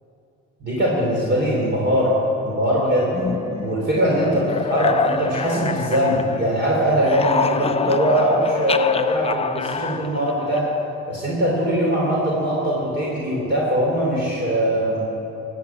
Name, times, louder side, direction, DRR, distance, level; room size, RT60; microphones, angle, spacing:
voice 1, 0.6-2.1 2.4-3.1 3.6-10.7 11.1-15.0, equal, 35° right, -4 dB, 3.2 m, -21 dB
sound 1, 3.1-6.6 6.9-10.9, left 5 dB, 20° left, 0.4 m, -27 dB
14.5 x 6.9 x 9.3 m, 2.9 s
cardioid pair, 90°, 30 cm